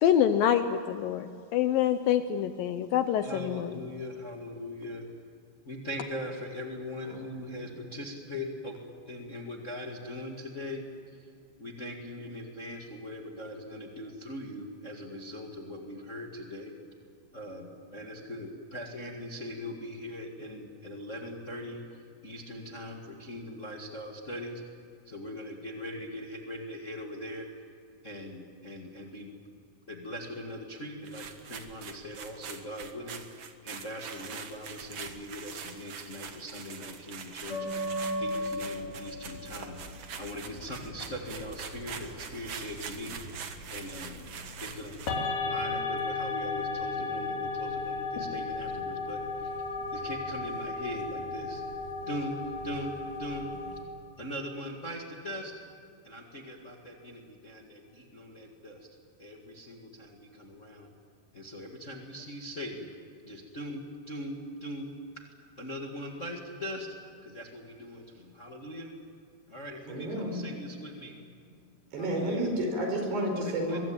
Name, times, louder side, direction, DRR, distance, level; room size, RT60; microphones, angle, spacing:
voice 1, 0.0-3.8, left 10 dB, 75° left, 9 dB, 2.1 m, -26 dB
voice 2, 3.2-5.0 5.6-8.8 9.1-11.3 11.6-16.7 17.3-24.6 25.0-27.4 28.0-29.3 29.9-37.8 38.2-43.4 43.7-44.2 44.6-45.0 45.4-51.6 52.1-52.3 52.6-53.8 54.2-55.5 56.0-58.9 59.2-60.9 61.3-62.9 63.2-65.2 65.6-66.9 67.2-68.9 69.5-71.2 71.9-72.4 73.3-73.8, left 1 dB, 30° left, 1 dB, 1.4 m, -40 dB
voice 3, 7.0-7.6 69.9-70.4 71.9-73.8, right 1 dB, 75° right, 3 dB, 6.9 m, -31 dB
sound 1, 31.0-45.3, right 6 dB, 55° right, 2.0 m, -44 dB
sound 2, 37.5-53.8, left 3 dB, 55° left, 4.4 m, -36 dB
24.0 x 23.0 x 8.8 m, 2.4 s
omnidirectional pair, 4.7 m